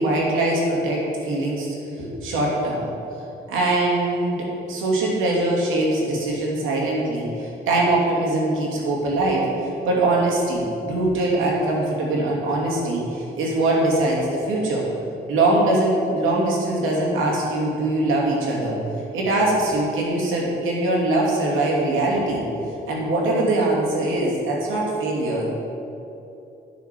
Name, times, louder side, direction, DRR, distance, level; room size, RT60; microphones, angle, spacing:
voice 1, 0.0-2.9 3.5-9.5 9.8-14.9 15.3-18.8 19.1-22.4 22.9-25.4, right 2 dB, 90° right, -3 dB, 2.8 m, -22 dB
10.5 x 6.2 x 7.7 m, 2.9 s
cardioid pair, 90°, 20 cm